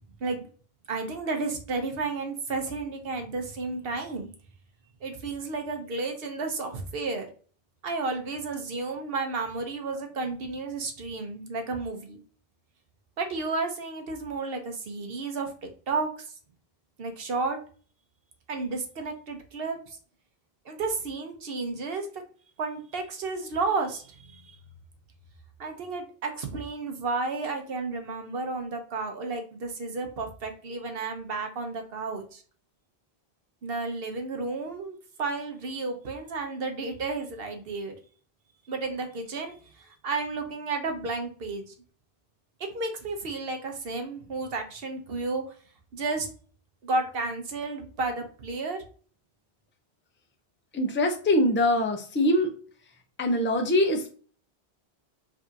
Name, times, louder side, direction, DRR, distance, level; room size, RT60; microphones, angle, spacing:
voice 1, 0.9-4.3 5.0-7.3 7.8-12.2 13.2-16.1 17.0-17.6 18.5-19.8 20.7-22.1 22.6-24.5 25.6-32.4 33.6-37.9 38.7-39.5 40.0-41.7 42.7-45.4 45.9-46.3 46.8-48.8, right 3 dB, 70° right, 5 dB, 1.0 m, -32 dB
voice 2, 50.7-52.5 53.2-54.1, left 1 dB, 15° left, 4 dB, 0.4 m, -23 dB
5.1 x 2.6 x 2.7 m, 0.42 s
omnidirectional pair, 1.1 m